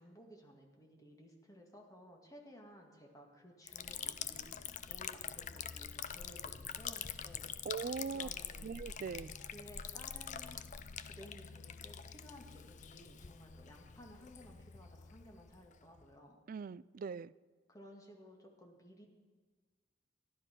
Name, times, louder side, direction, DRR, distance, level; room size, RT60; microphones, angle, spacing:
voice 1, 0.0-7.5 8.1-8.8 9.4-10.6 11.0-16.4 17.7-19.1, equal, 20° left, 2.0 m, -57 dB
Liquid, 3.7-16.1, left 8 dB, 40° left, 0.5 m, -45 dB
voice 2, 7.7-8.3 8.6-9.3 16.5-17.3, right 5 dB, 50° right, 0.3 m, -41 dB
13.5 x 11.5 x 5.9 m
head